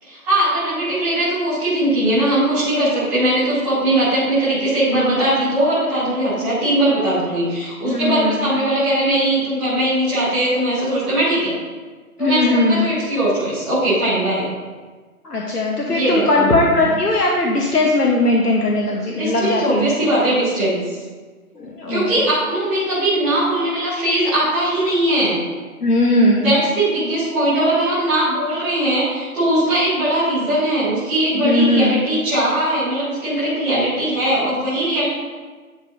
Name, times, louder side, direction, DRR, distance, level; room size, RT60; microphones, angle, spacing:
voice 1, 0.0-11.5 12.2-14.5 15.9-16.8 19.1-21.0 21.9-25.4 26.4-35.1, right 1 dB, ahead, -14 dB, 0.8 m, -20 dB
voice 2, 7.8-8.4 12.2-12.9 15.2-19.9 21.6-22.3 25.8-26.5 31.3-32.0, left 2 dB, 85° left, -1 dB, 1.0 m, -18 dB
10.0 x 4.8 x 2.6 m, 1.4 s
figure-of-eight pair, 145°, 45 cm